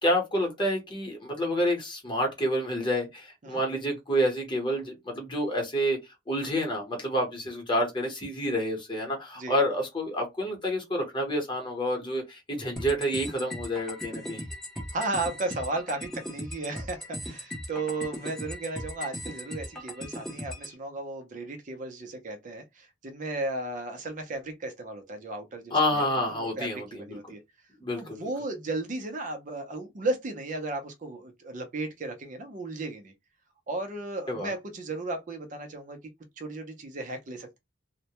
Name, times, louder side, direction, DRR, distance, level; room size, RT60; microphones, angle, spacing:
voice 1, 0.0-14.4 25.7-27.2 27.8-28.3 34.3-34.5, equal, 25° left, 0.9 m, -28 dB
sound 1, 12.8-20.7, equal, ahead, 0.6 m, -38 dB
voice 2, 14.9-27.4 27.9-33.1 33.7-36.0 36.4-37.6, right 2 dB, 40° right, 0.5 m, -35 dB
2.1 x 2.1 x 2.8 m
head